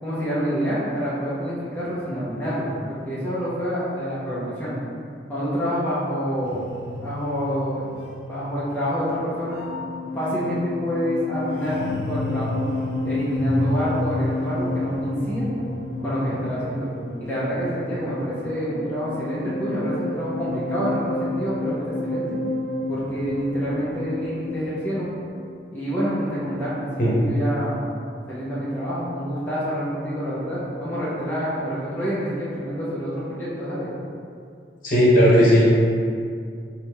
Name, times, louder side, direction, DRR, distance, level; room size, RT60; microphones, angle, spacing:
voice 1, 0.0-4.7 5.3-6.7 7.0-7.9 8.3-9.6 10.1-11.8 12.1-12.8 13.0-15.5 16.0-16.9 17.2-22.2 22.9-25.1 25.7-27.8 28.3-33.9, equal, 10° left, -11 dB, 0.7 m, -27 dB
sound 1, 6.4-25.3, left 2 dB, 85° left, 0.6 m, -30 dB
voice 2, 34.8-35.8, equal, 50° left, -7 dB, 1.0 m, -16 dB
3.3 x 2.8 x 4.5 m, 2.4 s
head